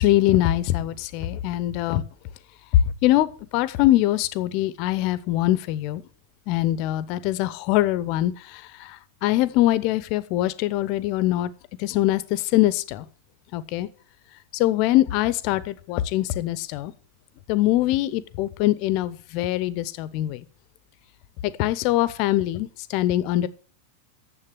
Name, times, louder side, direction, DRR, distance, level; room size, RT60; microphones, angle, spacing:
voice 1, 0.0-2.0 3.0-6.0 6.5-8.3 9.2-11.5 11.8-13.0 13.5-13.9 14.5-16.9 17.5-20.4 21.4-23.5, left 15 dB, 45° left, 17 dB, 0.8 m, -23 dB
9.8 x 7.3 x 7.3 m, 0.41 s
figure-of-eight pair, 90°, 0 cm